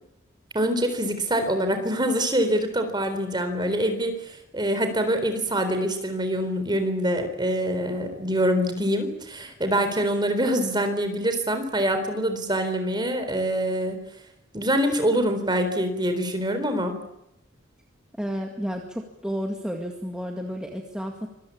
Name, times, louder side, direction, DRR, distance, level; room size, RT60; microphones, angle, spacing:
voice 1, 0.5-14.0 14.5-17.0, equal, 20° right, 8 dB, 4.0 m, -25 dB
voice 2, 18.2-21.3, equal, 5° right, 1 dB, 2.1 m, -31 dB
25.5 x 22.0 x 8.7 m, 0.86 s
head